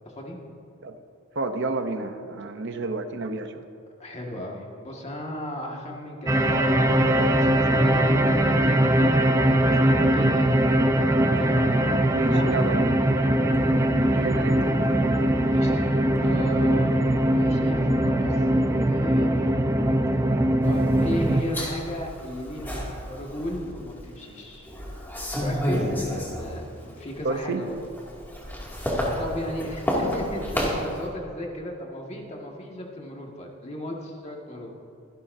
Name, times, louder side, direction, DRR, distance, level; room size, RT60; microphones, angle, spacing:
voice 1, 1.4-3.6 12.1-12.9 14.1-14.7 27.2-27.6, right 3 dB, 60° right, 7 dB, 0.8 m, -30 dB
voice 2, 4.0-12.5 13.4-14.4 15.5-19.8 20.6-24.8 25.4-27.8 28.8-34.7, equal, 30° left, -1 dB, 1.8 m, -36 dB
sound 1, 6.3-21.4, right 1 dB, 15° right, 0.6 m, -21 dB
sound 2, 20.6-24.0 24.5-26.8 27.2-31.0, equal, 10° left, 2.3 m, -31 dB
24.0 x 11.5 x 2.7 m, 2.8 s
head